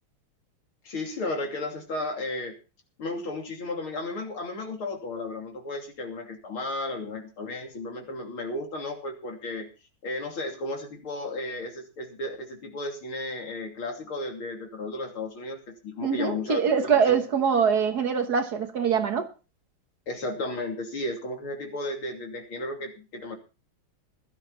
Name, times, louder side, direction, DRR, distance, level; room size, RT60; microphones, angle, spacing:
voice 1, 0.8-2.6 3.0-9.7 10.0-17.1 20.1-23.4, left 2 dB, 80° left, 3.7 m, -34 dB
voice 2, 16.0-19.3, right 6 dB, 50° right, 1.7 m, -23 dB
16.0 x 12.5 x 4.1 m
omnidirectional pair, 2.3 m